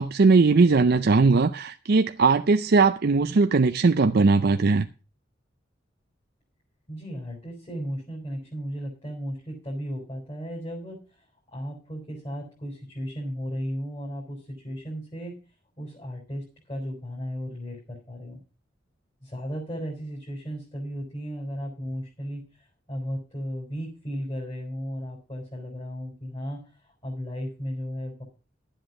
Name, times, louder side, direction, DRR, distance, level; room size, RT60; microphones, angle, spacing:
voice 1, 0.0-4.9, right 4 dB, 55° right, 0.5 m, -19 dB
voice 2, 6.9-11.2 11.5-15.4 15.8-18.4 19.2-28.2, equal, 30° left, 4.1 m, -35 dB
11.5 x 7.8 x 5.9 m
head